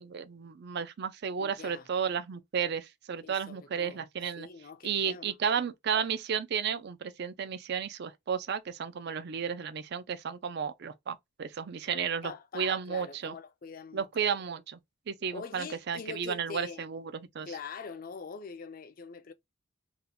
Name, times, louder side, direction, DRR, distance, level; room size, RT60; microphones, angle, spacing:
voice 1, 0.0-4.5 4.8-13.3 13.9-14.8 15.1-17.5, right 7 dB, 50° right, 0.4 m, -33 dB
voice 2, 1.4-1.9 3.2-4.0 4.4-5.3 11.9-14.1 15.3-16.9 17.5-19.3, left 5 dB, 40° left, 0.4 m, -44 dB
2.8 x 2.1 x 3.8 m
head